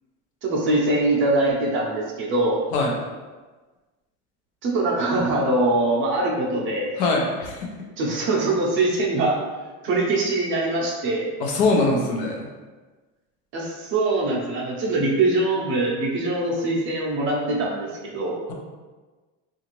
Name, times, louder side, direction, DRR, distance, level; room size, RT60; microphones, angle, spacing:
voice 1, 0.4-2.6 4.6-6.9 8.0-9.4 9.8-11.3 13.5-18.4, right 2 dB, 35° right, -3 dB, 0.6 m, -23 dB
voice 2, 7.0-7.7 11.4-12.4, left 3 dB, 65° left, 0 dB, 0.8 m, -22 dB
3.8 x 2.5 x 3.0 m, 1.3 s
cardioid pair, 170°, 34 cm